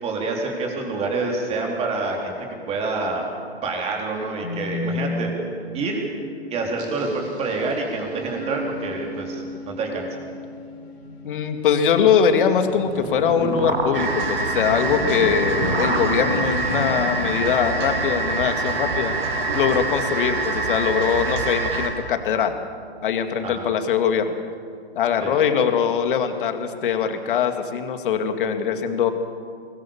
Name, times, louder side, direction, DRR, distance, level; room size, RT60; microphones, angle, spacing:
voice 1, 0.0-3.3 3.6-5.3 5.7-6.1 6.5-10.1 23.4-23.7 25.2-25.4, right 3 dB, 20° right, 0 dB, 3.9 m, -27 dB
sound 1, 4.4-21.1, left 2 dB, 70° left, 4.8 m, -35 dB
sound 2, 6.8-9.5 9.9-10.1 10.9-11.2 11.9-12.0 12.2-12.3 12.6-19.7, right 2 dB, 85° right, 3.9 m, -31 dB
voice 2, 11.2-19.1 19.6-22.6 23.0-24.4 25.0-29.1, left 7 dB, 50° left, 7 dB, 2.3 m, -22 dB
sound 3, 13.9-21.9, right 3 dB, 60° right, 4.9 m, -25 dB
23.5 x 20.5 x 7.3 m, 2.3 s
hypercardioid pair, 140°, 33 cm